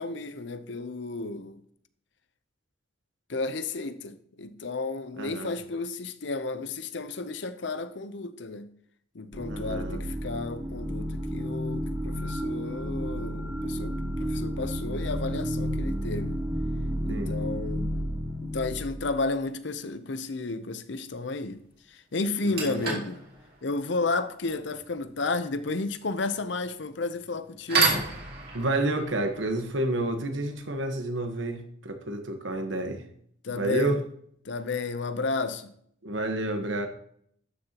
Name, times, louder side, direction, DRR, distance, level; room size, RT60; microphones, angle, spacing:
voice 1, 0.0-1.6 3.3-8.7 9.1-16.4 17.1-17.9 18.4-21.6 21.9-23.2 23.6-28.1 33.4-34.0 34.4-35.7, left 3 dB, 65° left, 0.7 m, -32 dB
voice 2, 5.2-5.5 9.5-10.0 17.1-17.4 22.4-22.8 28.5-33.1 33.5-34.0 36.0-36.9, right 1 dB, 75° right, 1.3 m, -30 dB
sound 1, 9.3-19.1, equal, 20° right, 1.9 m, -31 dB
sound 2, 19.2-19.5 21.5-21.6 22.1-30.9, right 4 dB, 50° right, 2.8 m, -33 dB
12.5 x 6.7 x 2.9 m
head